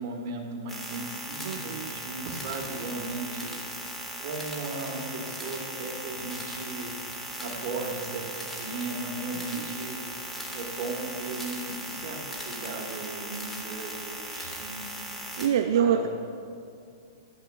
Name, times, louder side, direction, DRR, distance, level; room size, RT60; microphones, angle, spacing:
voice 1, 0.0-3.9 4.2-6.9 7.4-8.3 8.6-15.1 15.4-16.1, right 3 dB, 45° right, 0 dB, 1.2 m, -36 dB
sound 1, 0.7-15.5, right 1 dB, 5° left, 0.8 m, -38 dB
voice 2, 1.5-1.9 15.4-16.1, right 8 dB, 65° right, 7 dB, 0.3 m, -25 dB
10.5 x 10.0 x 2.3 m, 2.4 s
hypercardioid pair, 160°, 2 cm